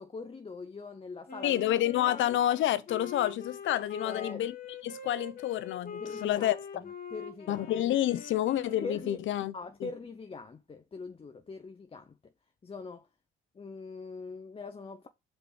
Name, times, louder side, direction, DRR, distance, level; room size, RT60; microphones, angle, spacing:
voice 1, 0.0-1.6 2.0-2.4 4.0-4.4 6.0-7.7 8.8-9.2 9.5-12.3 12.6-13.1 13.5-15.1, left 4 dB, 30° left, 0.8 m, -42 dB
Wind instrument woodwind instrument, 1.3-9.4, left 5 dB, 45° left, 2.1 m, -44 dB
voice 2, 1.4-4.5 4.8-6.6 7.5-9.5 9.8-9.9, left 12 dB, 75° left, 0.7 m, -29 dB
5.2 x 4.6 x 4.8 m
cardioid pair, 90°, 20 cm